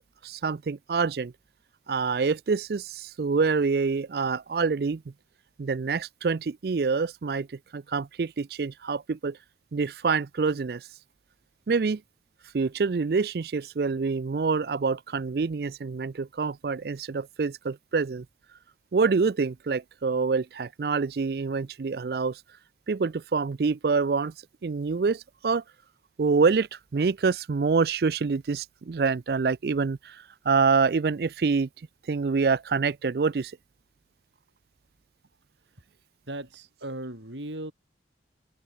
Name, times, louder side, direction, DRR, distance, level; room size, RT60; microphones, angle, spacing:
voice 1, 0.2-1.3 1.9-5.0 5.6-7.5 7.7-9.4 9.7-10.8 11.7-12.0 12.5-18.2 18.9-22.4 22.9-24.3 24.6-25.6 26.2-26.7 26.9-30.2 30.5-31.7 32.1-33.5, right 4 dB, 55° right, 0.4 m, -26 dB
voice 2, 36.3-37.7, right 1 dB, 85° right, 6.1 m, -37 dB
open air
head